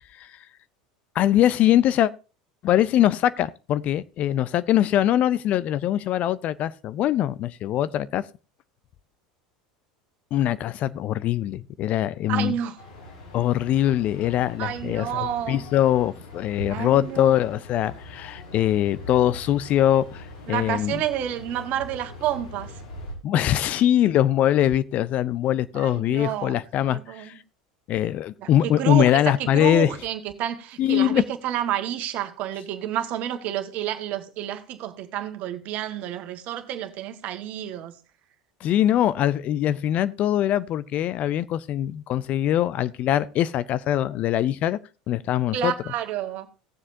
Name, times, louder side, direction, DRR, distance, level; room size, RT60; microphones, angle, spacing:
voice 1, 1.2-2.1 2.6-8.2 10.3-12.5 13.3-21.0 23.2-27.3 27.9-29.9 30.8-31.2 38.6-44.8 45.1-45.7, left 12 dB, 45° left, 0.5 m, -22 dB
voice 2, 12.3-12.8 14.6-15.6 16.7-17.3 20.5-22.8 25.7-26.6 26.8-27.3 28.4-37.9 45.5-46.5, right 11 dB, 50° right, 1.5 m, -30 dB
sound 1, 12.8-23.1, left 1 dB, 75° left, 3.4 m, -41 dB
17.5 x 7.3 x 2.7 m
hypercardioid pair, 80°, 3 cm